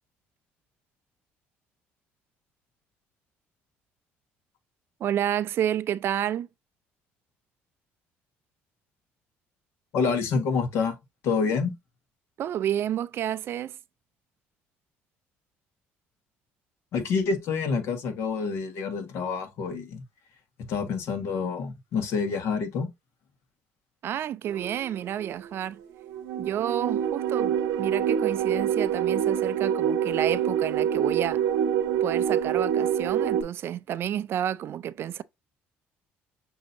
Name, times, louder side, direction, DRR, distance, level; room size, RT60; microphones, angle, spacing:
voice 1, 5.0-6.5 12.4-13.8 24.0-25.8 26.4-31.4 32.0-35.2, right 10 dB, 55° right, 0.4 m, -30 dB
voice 2, 9.9-11.0 11.2-11.7 16.9-20.0 20.7-22.9, left 5 dB, 70° left, 1.5 m, -27 dB
sound 1, 24.5-25.5 26.0-33.4, right 9 dB, 90° right, 0.9 m, -26 dB
6.2 x 2.8 x 2.6 m
cardioid pair, 105°, 5 cm